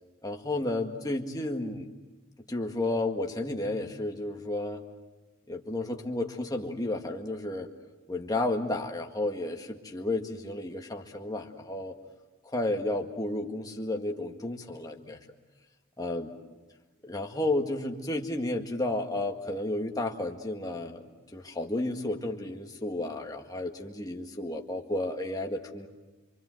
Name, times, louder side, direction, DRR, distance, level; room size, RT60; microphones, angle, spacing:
voice 1, 0.2-1.9 2.5-4.8 5.5-7.7 8.1-11.9 12.4-15.2 16.0-16.3 17.0-25.9, left 2 dB, 20° left, 1 dB, 1.9 m, -32 dB
27.5 x 25.0 x 7.9 m, 1.2 s
head